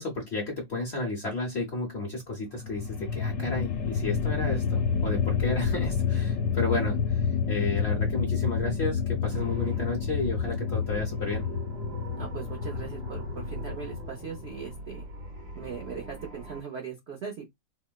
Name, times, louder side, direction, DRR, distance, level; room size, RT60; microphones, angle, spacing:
voice 1, 0.0-11.5, left 3 dB, 45° left, 0.9 m, -32 dB
sound 1, 2.5-14.8, left 6 dB, 75° left, 1.3 m, -29 dB
sound 2, 9.2-16.6, right 2 dB, 90° right, 2.1 m, -42 dB
voice 2, 12.1-15.0 15.5-17.5, right 6 dB, 65° right, 0.6 m, -39 dB
4.3 x 2.1 x 2.3 m
omnidirectional pair, 2.0 m